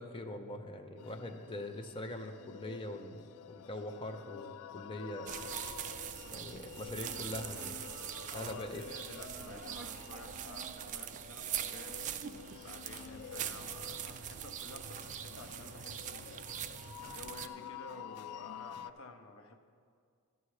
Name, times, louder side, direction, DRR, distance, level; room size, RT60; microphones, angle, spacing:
voice 1, 0.0-5.3 6.3-7.9 8.3-8.8, left 1 dB, 25° left, 5 dB, 0.6 m, -43 dB
sound 1, 1.0-18.9, left 9 dB, 80° left, 0.3 m, -50 dB
sound 2, 5.3-17.5, right 9 dB, 35° right, 0.3 m, -42 dB
voice 2, 8.3-12.0 12.6-16.4 17.0-19.6, left 3 dB, 65° left, 6 dB, 0.8 m, -51 dB
11.0 x 7.0 x 4.8 m, 2.2 s
head